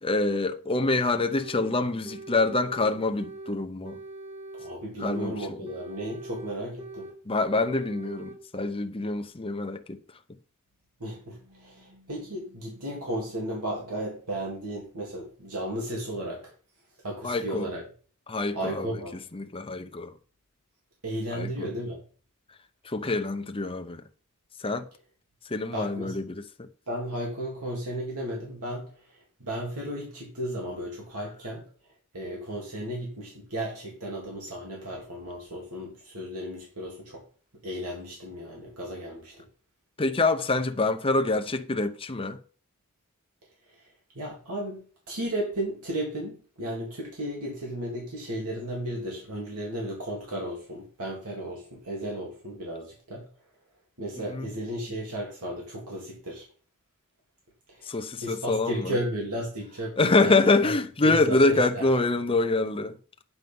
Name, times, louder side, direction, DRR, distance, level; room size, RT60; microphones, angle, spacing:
voice 1, 0.0-4.0 5.0-5.6 7.3-10.0 17.2-17.7 18.3-18.9 19.3-20.1 21.3-21.7 22.8-24.0 24.6-24.9 25.5-26.7 40.0-42.4 54.2-54.5 57.8-59.0 60.0-63.0, left 3 dB, 25° left, 0.8 m, -26 dB
sound 1, 1.4-1.8 2.0-3.6 3.8-5.4 5.6-7.2 7.4-8.4, right 2 dB, 30° right, 1.7 m, -42 dB
voice 2, 4.6-7.1 11.0-16.5 17.0-17.8 18.5-19.1 21.0-22.0 25.7-26.2 26.9-31.7 32.1-37.2 37.6-39.4 43.7-43.8 44.1-53.3 54.0-56.4 57.7-57.9 58.2-60.3 60.6-60.7 61.0-61.9, right 1 dB, 80° right, 3.1 m, -34 dB
9.4 x 6.4 x 5.4 m
head